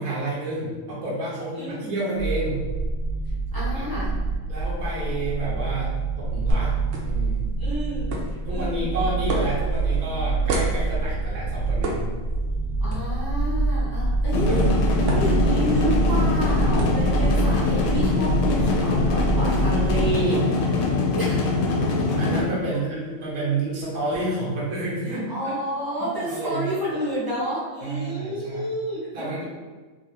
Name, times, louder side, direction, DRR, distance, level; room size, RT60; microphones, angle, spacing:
voice 1, 0.0-2.6 3.7-3.8 4.5-6.8 7.0-7.4 8.5-12.0 14.5-14.6 22.2-25.5 26.0-26.8 27.8-28.7 29.1-29.5, right 2 dB, 85° right, -7 dB, 1.3 m, -29 dB
voice 2, 1.5-1.9 3.5-4.2 7.6-8.1 8.5-8.9 12.8-14.7 15.0-20.4 21.1-21.4 25.3-29.3, right 1 dB, 20° right, -9 dB, 0.6 m, -30 dB
sound 1, 2.2-20.1, right 3 dB, 55° left, 0.6 m, -26 dB
sound 2, 6.5-24.2, right 1 dB, 65° right, 0.8 m, -35 dB
sound 3, 14.3-22.4, left 3 dB, 75° left, 1.0 m, -23 dB
3.2 x 2.5 x 2.6 m, 1.4 s
omnidirectional pair, 1.6 m